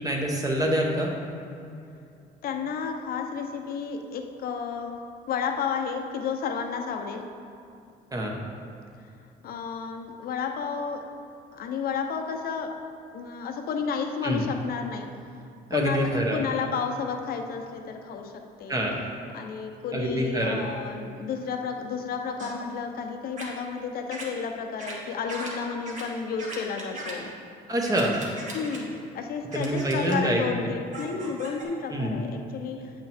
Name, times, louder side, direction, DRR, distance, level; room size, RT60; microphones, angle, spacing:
voice 1, 0.0-1.1 8.1-8.4 14.2-14.4 15.7-16.4 18.7-19.0 19.9-20.6 27.7-28.2 29.5-30.4 31.9-32.2, right 1 dB, 20° right, 0 dB, 1.2 m, -26 dB
voice 2, 2.4-5.0 5.3-7.2 9.4-11.0 11.5-12.7 13.1-15.1 15.7-18.8 19.3-27.3 28.5-32.9, left 6 dB, 60° left, 4 dB, 0.8 m, -32 dB
sound 1, 22.4-22.6 23.4-23.5 24.1-24.3 24.8-24.9 25.3-25.5 25.9-26.0 26.4-27.1 27.9-28.8 29.5-30.2 30.9-31.6, right 2 dB, 45° right, 1.7 m, -38 dB
8.9 x 5.6 x 3.5 m, 2.6 s
cardioid pair, 110°, 17 cm